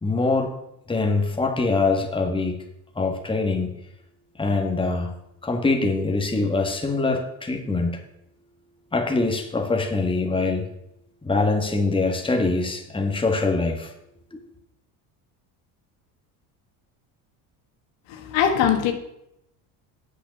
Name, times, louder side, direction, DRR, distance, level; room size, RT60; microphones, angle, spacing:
voice 1, 0.0-0.5 0.9-2.6 2.9-3.7 4.4-5.1 5.4-8.0 8.9-10.6 11.2-13.9 14.3-14.4, left 3 dB, 10° left, 4 dB, 1.5 m, -23 dB
voice 2, 18.1-18.9, left 8 dB, 80° left, 5 dB, 1.6 m, -21 dB
8.1 x 6.7 x 6.8 m, 0.80 s
supercardioid pair, 100°, 45 cm